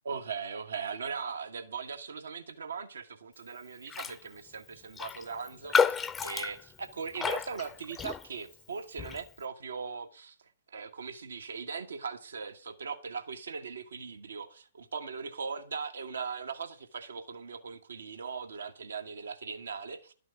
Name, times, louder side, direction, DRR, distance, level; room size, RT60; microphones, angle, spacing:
voice 1, 0.0-6.0 6.2-10.4 10.7-20.1, right 5 dB, 70° right, 1.5 m, -39 dB
Raindrop, 3.9-4.2 4.5-4.6 5.0-8.5 9.0-9.2, left 6 dB, 15° left, 0.7 m, -31 dB
12.0 x 6.1 x 8.2 m
figure-of-eight pair, 120°, 0 cm